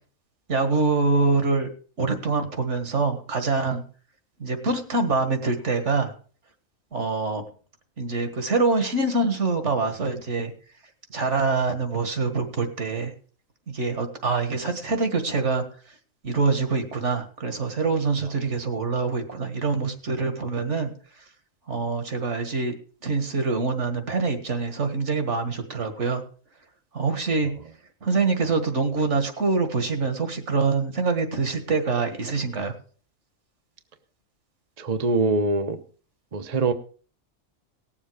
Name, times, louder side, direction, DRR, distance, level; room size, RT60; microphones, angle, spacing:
voice 1, 0.5-1.7 2.0-3.8 4.4-6.1 6.9-7.4 8.0-10.5 11.1-13.1 13.7-15.9 16.2-21.2 21.7-22.7 23.0-26.2 26.9-27.5 28.0-32.7, right 4 dB, 65° right, 7 dB, 2.0 m, -25 dB
voice 2, 34.8-35.8 36.3-36.7, right 3 dB, 35° right, 8 dB, 0.8 m, -23 dB
18.0 x 7.4 x 4.9 m, 0.41 s
omnidirectional pair, 1.3 m